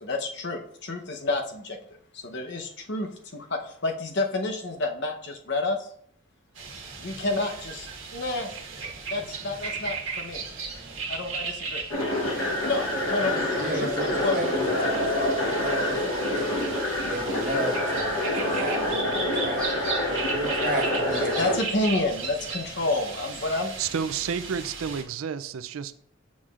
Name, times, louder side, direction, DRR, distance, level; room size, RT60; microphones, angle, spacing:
voice 1, 0.0-1.8 2.1-5.9 7.0-7.9 8.1-8.5 9.1-10.5 11.1-11.8 12.6-13.9 14.2-14.4 20.8-23.7, left 2 dB, 55° left, 0.9 m, -29 dB
sound 1, 6.6-25.0, right 4 dB, 70° right, 1.4 m, -36 dB
sound 2, 11.9-21.6, left 1 dB, 80° left, 1.1 m, -27 dB
voice 2, 13.3-16.7 17.1-21.5 22.4-22.5, right 1 dB, 45° right, 1.3 m, -34 dB
voice 3, 23.8-26.0, right 7 dB, 90° right, 0.4 m, -31 dB
7.1 x 6.2 x 2.5 m
head